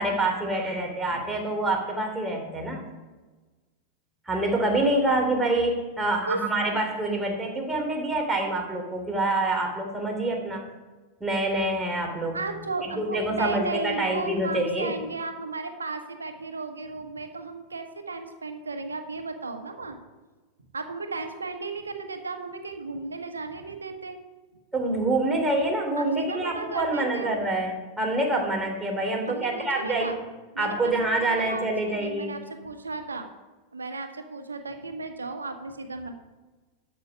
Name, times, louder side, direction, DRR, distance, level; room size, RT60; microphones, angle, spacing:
voice 1, 0.0-2.9 4.3-10.6 11.2-12.4 12.8-14.9 24.7-30.1 30.6-32.4, right 2 dB, 10° right, 0 dB, 3.1 m, -26 dB
voice 2, 12.3-20.0 20.7-24.1 26.0-27.4 29.3-30.2 30.5-33.3 33.7-36.1, right 3 dB, 75° right, 6 dB, 1.4 m, -35 dB
12.5 x 7.3 x 5.2 m, 1.2 s
figure-of-eight pair, 90°, 0 cm